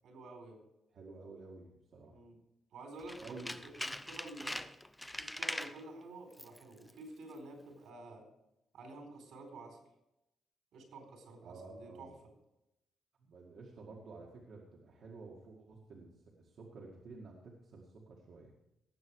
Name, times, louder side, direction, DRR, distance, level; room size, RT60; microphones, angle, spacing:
voice 1, 0.0-0.6 2.1-2.4 2.7-4.7 5.2-8.2 8.7-9.8 10.7-12.1, right 2 dB, 75° right, 3 dB, 4.3 m, -50 dB
voice 2, 0.9-2.2 3.2-3.5 11.4-12.1 13.2-16.1 16.4-18.5, right 3 dB, 55° right, -3 dB, 2.0 m, -51 dB
Tools, 3.0-5.8 6.3-6.6 6.9-7.0, left 1 dB, 5° left, 0.5 m, -42 dB
18.0 x 7.6 x 4.8 m, 0.88 s
cardioid pair, 150°, 0 cm